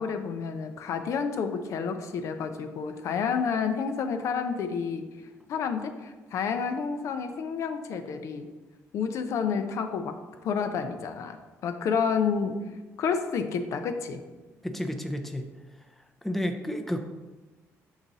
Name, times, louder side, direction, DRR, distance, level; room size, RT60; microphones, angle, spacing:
voice 1, 0.0-5.1 5.5-8.5 8.9-11.4 11.6-12.6 13.0-14.2, left 6 dB, 65° left, 7 dB, 0.5 m, -30 dB
voice 2, 14.6-15.5 16.2-17.0, equal, 5° left, 5 dB, 0.5 m, -31 dB
5.9 x 3.9 x 4.0 m, 1.2 s
cardioid pair, 105°, 6 cm